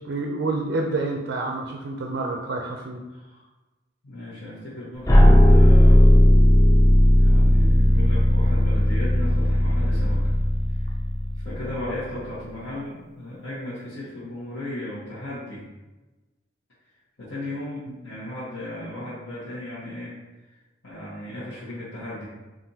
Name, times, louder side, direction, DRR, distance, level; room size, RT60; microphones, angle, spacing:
voice 1, 0.0-3.0, right 3 dB, 65° right, 1 dB, 0.4 m, -28 dB
voice 2, 3.1-3.4 4.0-6.4 7.2-10.3 10.7-11.0 11.4-15.7 17.2-20.2 20.5-20.6 20.8-22.3, left 1 dB, 70° left, -11 dB, 1.2 m, -36 dB
sound 1, 5.1-12.0, left 1 dB, 15° left, 0.4 m, -16 dB
5.5 x 2.5 x 2.8 m, 1.1 s
head